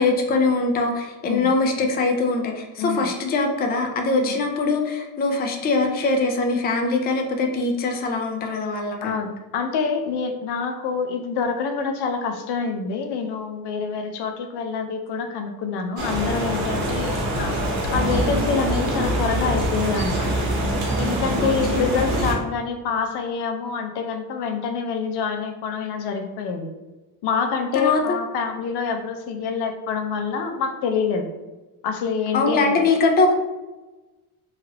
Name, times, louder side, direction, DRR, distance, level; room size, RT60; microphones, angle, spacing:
voice 1, 0.0-9.2 21.4-22.0 27.8-28.0 32.3-33.3, left 3 dB, 25° left, 2 dB, 0.4 m, -22 dB
voice 2, 2.8-3.1 4.2-4.4 9.0-17.6 17.9-20.3 21.0-26.7 27.2-31.3 31.8-33.0, left 5 dB, 75° left, 5 dB, 0.6 m, -26 dB
sound 1, 16.0-22.3, right 1 dB, 65° right, 1.0 m, -24 dB
3.0 x 2.4 x 2.9 m, 1.1 s
cardioid pair, 110°, 40 cm